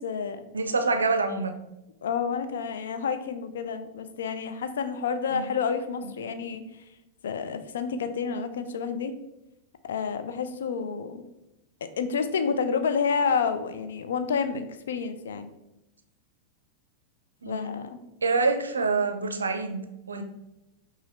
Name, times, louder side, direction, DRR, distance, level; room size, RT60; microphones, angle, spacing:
voice 1, 0.0-0.4 2.0-6.6 7.2-9.1 9.8-11.2 12.0-15.5 17.5-18.0, left 6 dB, 65° left, 9 dB, 0.4 m, -29 dB
voice 2, 0.5-1.6 5.3-5.5 17.4-17.8 18.2-20.2, right 3 dB, 75° right, 7 dB, 0.4 m, -26 dB
5.5 x 2.5 x 3.1 m, 0.91 s
figure-of-eight pair, 90°, 0 cm